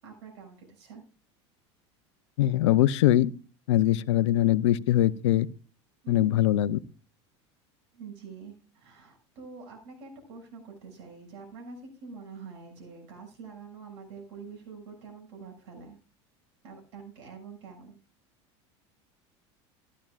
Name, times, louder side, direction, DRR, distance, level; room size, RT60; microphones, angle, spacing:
voice 1, 0.0-1.0 6.0-6.4 7.9-16.0 16.6-18.0, right 5 dB, 75° right, 1 dB, 6.8 m, -46 dB
voice 2, 2.4-3.3 3.7-5.5 6.1-6.8, left 13 dB, 85° left, 16 dB, 0.6 m, -22 dB
15.0 x 12.5 x 2.5 m, 0.38 s
supercardioid pair, 100°, 15 cm